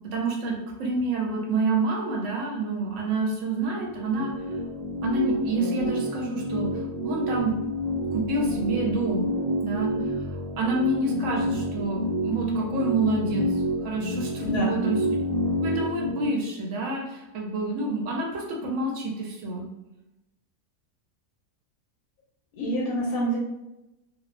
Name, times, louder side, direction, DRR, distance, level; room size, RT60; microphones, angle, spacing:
voice 1, 0.1-0.5 0.8-4.3 5.0-7.5 8.1-9.3 9.6-15.0 15.6-19.7, right 2 dB, 65° right, -1 dB, 0.8 m, -28 dB
sound 1, 3.8-16.3, equal, 90° right, 1.1 m, -29 dB
voice 2, 14.4-14.8 22.6-23.4, equal, 75° left, -4 dB, 1.0 m, -27 dB
2.5 x 2.0 x 2.4 m, 0.94 s
omnidirectional pair, 1.6 m